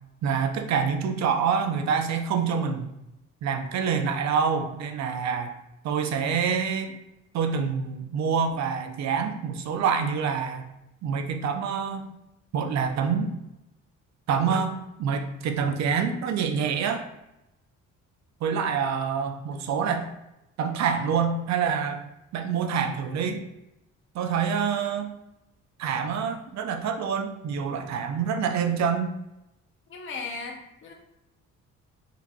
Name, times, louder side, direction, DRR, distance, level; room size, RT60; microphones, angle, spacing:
voice 1, 0.2-2.9 3.4-5.5 5.8-7.0 7.3-10.7 11.0-12.1 12.5-13.4 14.3-17.1 18.4-20.1 20.6-22.0 22.3-23.4 24.1-25.2 25.8-29.1, right 6 dB, 65° right, 5 dB, 0.5 m, -26 dB
voice 2, 29.9-30.9, left 4 dB, 40° left, 1 dB, 0.7 m, -36 dB
3.8 x 2.8 x 2.3 m, 0.90 s
cardioid pair, 90°, 30 cm